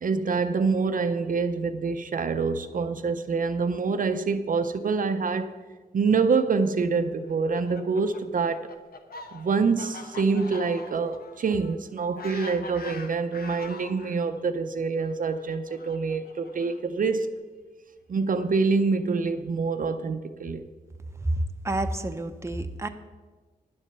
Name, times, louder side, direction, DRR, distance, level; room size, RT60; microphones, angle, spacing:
voice 1, 0.0-5.6 5.9-8.7 9.3-17.3 18.1-20.6, right 4 dB, 60° right, 9 dB, 0.6 m, -26 dB
Fowl, 7.2-14.2 15.0-17.0, left 4 dB, 75° left, 1.0 m, -43 dB
voice 2, 21.2-22.9, right 1 dB, 15° right, 7 dB, 0.7 m, -29 dB
10.5 x 7.5 x 6.7 m, 1.3 s
wide cardioid pair, 105°, 16 cm